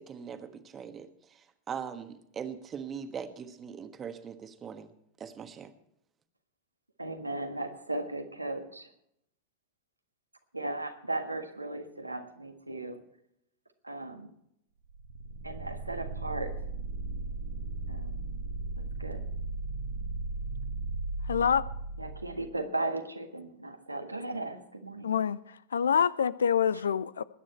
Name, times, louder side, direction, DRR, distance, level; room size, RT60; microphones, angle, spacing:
voice 1, 0.0-4.9 5.2-5.7, right 7 dB, 25° right, 1.3 m, -41 dB
voice 2, 7.0-8.9 10.5-13.0 13.8-14.3 15.4-16.6 17.9-18.2 19.0-19.2 22.0-25.1, right 2 dB, 85° right, 1.6 m, -36 dB
sound 1, 14.9-22.6, right 3 dB, 60° right, 1.4 m, -36 dB
voice 3, 21.3-21.6 25.0-27.2, left 7 dB, 70° left, 0.5 m, -26 dB
20.5 x 9.5 x 4.4 m
figure-of-eight pair, 90°, 0 cm